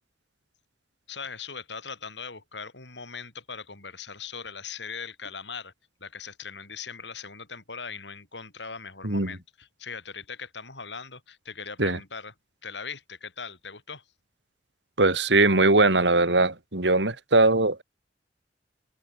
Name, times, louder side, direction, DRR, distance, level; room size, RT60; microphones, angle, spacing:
voice 1, 1.1-5.7 6.0-12.3 12.6-14.0, left 5 dB, 80° left, 7.5 m, -40 dB
voice 2, 9.0-9.4 11.8-12.0 15.0-17.8, right 2 dB, 80° right, 3.5 m, -21 dB
head